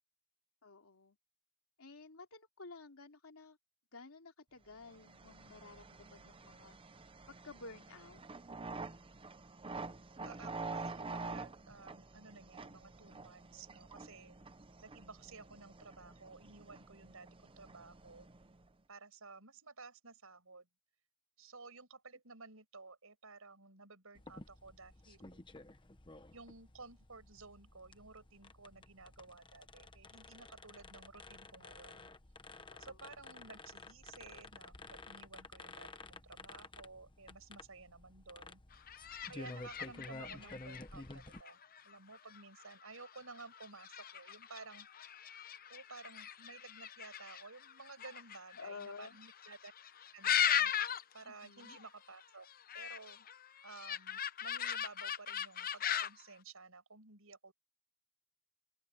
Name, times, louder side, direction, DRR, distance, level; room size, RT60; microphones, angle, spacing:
voice 1, 0.6-1.2 1.8-3.6 3.9-6.8 7.3-8.2 32.7-33.0 48.6-49.2 51.2-51.8, left 4 dB, 80° left, 2.9 m, -52 dB
sound 1, 4.8-18.7, right 3 dB, 25° right, 0.8 m, -48 dB
voice 2, 10.2-14.4 14.8-18.3 18.9-20.7 21.4-25.4 26.3-32.1 32.8-38.6 39.3-41.6 41.8-44.9 45.7-49.7 50.1-50.7 51.1-52.5 52.7-53.3 53.6-57.5, right 4 dB, 80° right, 6.1 m, -54 dB
sound 2, 24.1-41.4, left 2 dB, 25° left, 1.1 m, -52 dB
sound 3, 38.7-51.2 51.5-51.9 52.2-56.2, left 9 dB, 45° left, 0.8 m, -39 dB
open air
head